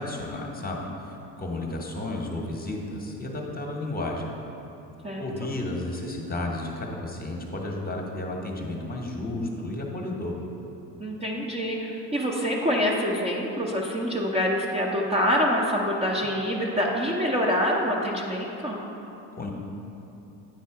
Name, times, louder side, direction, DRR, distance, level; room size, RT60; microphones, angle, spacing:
voice 1, 0.0-4.2 5.2-10.3 19.4-19.5, left 2 dB, 20° left, 0 dB, 1.0 m, -32 dB
voice 2, 11.0-18.8, equal, 15° right, -3 dB, 0.6 m, -26 dB
9.3 x 4.0 x 4.7 m, 2.9 s
cardioid pair, 110°, 41 cm